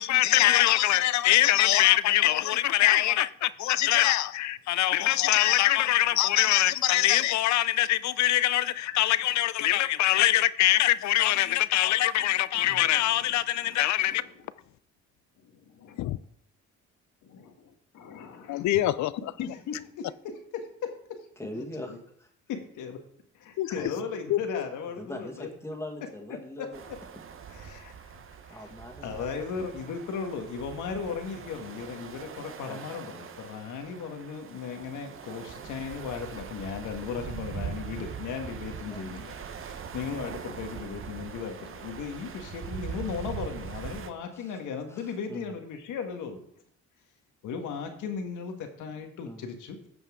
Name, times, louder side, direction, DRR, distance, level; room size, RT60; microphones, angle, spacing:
voice 1, 0.0-14.2 16.0-16.2 18.5-19.1 23.6-23.7 24.3-24.6, left 14 dB, 70° left, 0.5 m, -23 dB
voice 2, 12.6-13.3 13.6-14.5 15.4-16.2 17.2-18.8 19.4-20.9 21.5-22.0 22.5-23.0 23.7-25.5 26.6-27.0 27.5-27.9 28.5-28.7 29.0-46.4 47.4-49.9, left 6 dB, 85° left, 1.5 m, -37 dB
voice 3, 21.4-22.3 23.7-24.1 25.0-26.8 28.5-29.7 32.6-32.9 38.9-39.1 44.3-44.6 44.9-45.5 49.2-49.4, left 1 dB, 10° left, 1.8 m, -42 dB
sound 1, 26.7-44.1, right 7 dB, 45° right, 0.9 m, -41 dB
14.5 x 5.6 x 3.6 m
cardioid pair, 90°, 30 cm